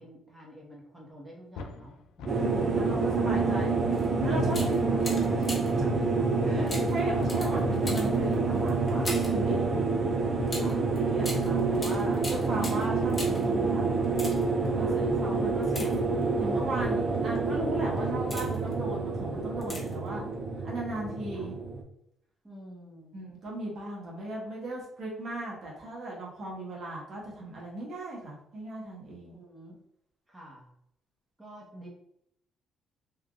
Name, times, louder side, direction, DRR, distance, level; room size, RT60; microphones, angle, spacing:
voice 1, 0.0-3.6 4.0-4.1 4.6-4.7 6.4-6.8 10.6-10.8 14.8-15.0 21.3-21.5 22.4-23.2 29.3-29.8 30.3-30.7 31.4-31.9, right 1 dB, 10° right, -4 dB, 1.0 m, -47 dB
sound 1, 1.6-2.6 2.9-3.8 4.2-9.6, left 4 dB, 85° left, 0.3 m, -39 dB
sound 2, 2.3-21.8, right 4 dB, 45° right, 0.5 m, -28 dB
voice 2, 2.3-3.8 4.2-6.1 6.4-9.8 10.5-13.9 14.7-20.2 20.6-21.6 23.1-29.4, right 1 dB, 65° right, -3 dB, 1.1 m, -37 dB
sound 3, 3.9-4.1 4.5-5.9 6.7-9.4 10.5-13.5 14.0-14.7 15.6-16.5 17.1-17.4 17.9-18.7 19.6-20.1 20.3-20.4, left 1 dB, 25° left, 1.0 m, -40 dB
3.4 x 2.4 x 2.4 m, 0.77 s
cardioid pair, 90°, 0 cm